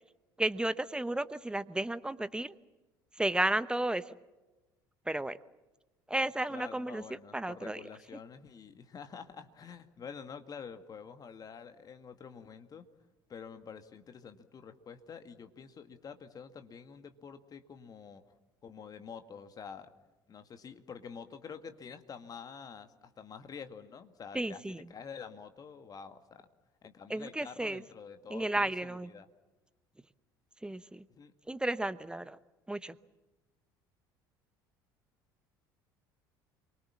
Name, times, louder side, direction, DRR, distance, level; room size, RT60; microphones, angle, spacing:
voice 1, 0.4-2.5 3.2-4.0 5.1-5.4 6.1-7.0 7.3-7.8 24.3-24.9 27.1-27.8 28.3-29.1 30.6-31.0 31.5-32.4 32.7-33.0, right 1 dB, 10° right, 16 dB, 1.0 m, -33 dB
voice 2, 6.5-12.8 13.3-18.2 18.6-19.9 20.3-24.6 24.9-26.4 26.8-29.3 31.2-31.3, left 6 dB, 35° left, 8 dB, 2.1 m, -48 dB
29.0 x 24.0 x 7.3 m, 1.1 s
figure-of-eight pair, 60°, 11 cm